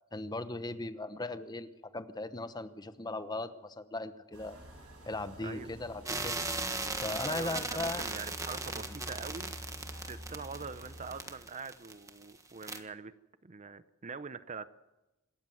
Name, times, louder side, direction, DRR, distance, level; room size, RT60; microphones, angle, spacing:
voice 1, 0.1-4.6 5.0-6.4 7.0-8.0, left 2 dB, 20° left, 11 dB, 0.9 m, -38 dB
sound 1, 4.3-11.2, equal, 80° right, 7.6 m, -49 dB
sound 2, 6.1-12.3 12.6-12.8, right 3 dB, 15° right, 1.5 m, -37 dB
voice 2, 7.3-9.5 10.1-13.1 13.4-14.7, right 5 dB, 35° right, 14 dB, 0.6 m, -43 dB
26.5 x 13.5 x 7.7 m, 1.0 s
head